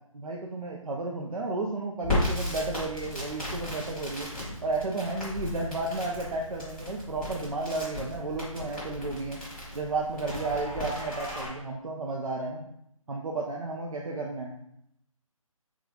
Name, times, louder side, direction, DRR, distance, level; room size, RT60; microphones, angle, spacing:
voice 1, 0.1-4.3 4.6-9.4 9.7-12.6 13.1-14.6, right 3 dB, 80° right, -1 dB, 0.5 m, -32 dB
Crackle, 2.0-11.5, left 1 dB, 5° left, 1.0 m, -35 dB
3.9 x 2.3 x 3.1 m, 0.76 s
figure-of-eight pair, 150°, 18 cm